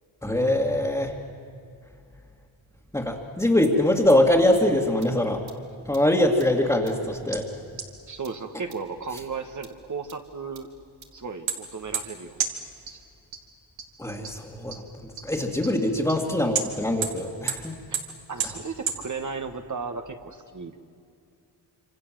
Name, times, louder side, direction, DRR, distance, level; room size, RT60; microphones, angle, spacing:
voice 1, 0.2-1.1 2.9-5.4 5.9-7.5 14.0-17.8, left 1 dB, 5° left, -4 dB, 2.3 m, -23 dB
sound 1, 3.6-3.7 4.1-4.2 4.5-4.6 5.0-5.1 5.5-5.6 5.9-6.0 6.4-6.5 6.9-7.0 7.3-7.4 7.8-7.9 8.2-8.3 8.7-8.8 9.2-9.3 9.6-9.7 10.1-10.2 10.5-10.6 11.0-11.1 11.5-11.6 11.9-12.0 12.4-12.5 12.9-13.0 13.3-13.4 13.8-13.9 14.2-14.3 14.7-14.8 15.2-15.3 15.6-15.7 16.1-16.2 16.5-16.6 17.0-17.1 17.5-17.6 17.9-18.0 18.4-18.5 18.9-19.0, right 8 dB, 75° right, 2.7 m, -28 dB
voice 2, 8.1-10.7 11.1-12.5 12.9-13.0 17.9-18.0 18.3-20.8, right 5 dB, 40° right, 6 dB, 1.6 m, -35 dB
26.5 x 26.0 x 7.7 m, 2.5 s
cardioid pair, 85°, 47 cm